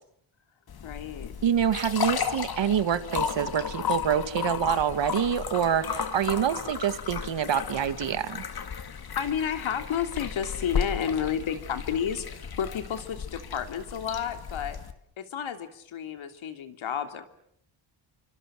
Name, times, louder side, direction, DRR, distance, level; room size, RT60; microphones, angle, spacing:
sound 1, 0.7-14.9, left 7 dB, 45° left, 2.2 m, -34 dB
voice 1, 0.8-1.3 9.1-14.8 15.2-17.3, left 8 dB, 70° left, 7 dB, 3.1 m, -31 dB
voice 2, 1.4-8.4, right 8 dB, 60° right, 11 dB, 2.1 m, -26 dB
29.5 x 25.0 x 7.6 m, 0.69 s
cardioid pair, 130°, 50 cm